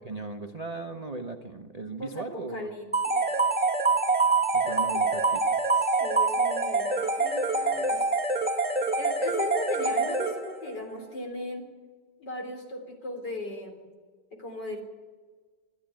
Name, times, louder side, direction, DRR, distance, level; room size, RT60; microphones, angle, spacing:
voice 1, 0.0-2.7 4.5-5.6, right 3 dB, 30° right, 4 dB, 0.7 m, -37 dB
voice 2, 2.0-3.4 4.9-5.0 5.7-8.0 9.0-11.7 12.2-13.8 14.4-14.8, left 1 dB, 55° left, 4 dB, 4.3 m, -38 dB
sound 1, 2.9-10.7, right 3 dB, 5° right, 1.9 m, -25 dB
26.5 x 13.0 x 9.0 m, 1.5 s
omnidirectional pair, 2.2 m